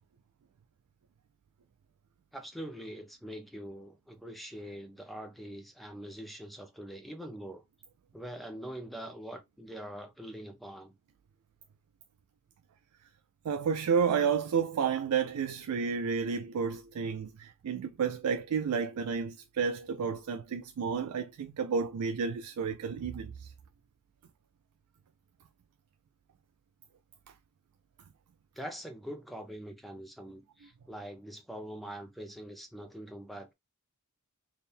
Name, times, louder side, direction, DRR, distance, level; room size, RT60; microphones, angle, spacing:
voice 1, 2.3-7.6 8.1-10.9 28.5-33.5, equal, ahead, 0.6 m, -43 dB
voice 2, 13.4-23.5, right 6 dB, 85° right, 0.4 m, -31 dB
3.5 x 2.1 x 4.2 m
head